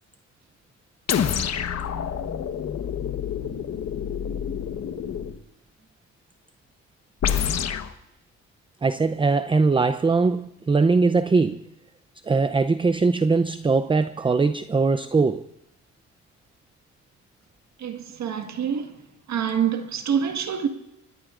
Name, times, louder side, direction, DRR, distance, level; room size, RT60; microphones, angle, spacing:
sound 1, 1.1-5.4 7.2-7.9, left 8 dB, 55° left, 1.2 m, -27 dB
voice 1, 8.8-11.6 12.3-15.5, right 4 dB, 15° right, 0.5 m, -21 dB
voice 2, 17.8-19.0 19.3-20.7, right 8 dB, 65° right, 1.7 m, -26 dB
26.0 x 18.5 x 2.5 m
cardioid pair, 90°, 30 cm